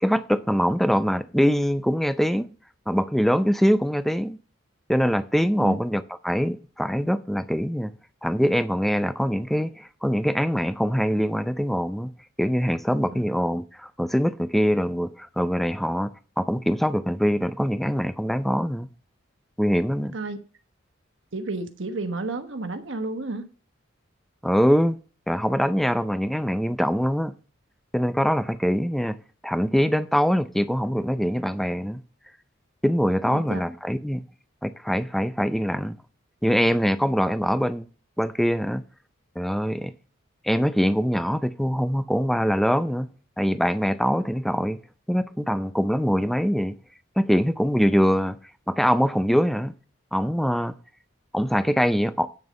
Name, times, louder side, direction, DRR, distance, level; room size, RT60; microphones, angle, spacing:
voice 1, 0.0-2.5 2.9-4.4 4.9-7.9 8.2-12.1 12.4-16.1 16.4-18.9 19.6-20.1 24.4-25.0 25.3-27.3 27.9-29.2 29.4-32.0 32.8-34.2 34.6-36.0 36.4-37.9 38.2-38.8 39.4-39.9 40.4-43.1 43.4-44.8 45.1-46.8 47.2-48.4 48.7-49.7 50.1-50.8 51.3-52.3, equal, ahead, 0.4 m, -23 dB
voice 2, 20.0-20.4 21.3-23.5 33.3-33.6, right 2 dB, 65° right, 1.2 m, -31 dB
9.0 x 6.6 x 5.2 m
head